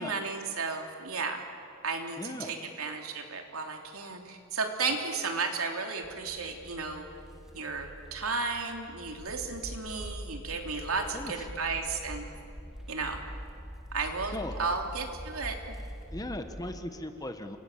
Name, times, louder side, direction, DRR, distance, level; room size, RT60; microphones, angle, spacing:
voice 1, 0.0-1.4 1.8-2.2 2.5-7.0 7.5-12.3 12.9-13.2 13.9-14.3 14.6-15.6, right 4 dB, 80° right, 3 dB, 3.4 m, -33 dB
voice 2, 2.2-2.5 4.9-5.0 11.1-11.5 14.1-14.6 16.1-17.6, left 1 dB, 15° left, 7 dB, 1.5 m, -38 dB
sound 1, 6.0-16.8, equal, ahead, 1.9 m, -44 dB
30.0 x 25.5 x 7.5 m, 2.6 s
head